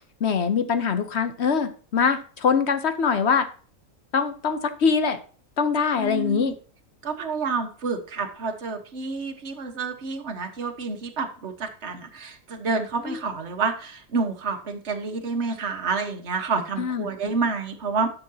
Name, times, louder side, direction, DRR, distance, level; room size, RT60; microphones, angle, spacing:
voice 1, 0.2-3.5 4.1-5.2 5.6-6.5 13.1-13.2 16.8-17.1, left 6 dB, 55° left, 10 dB, 1.0 m, -23 dB
voice 2, 6.0-6.5 7.0-18.1, right 4 dB, 50° right, 4 dB, 1.5 m, -29 dB
11.5 x 6.6 x 2.8 m, 0.41 s
omnidirectional pair, 1.5 m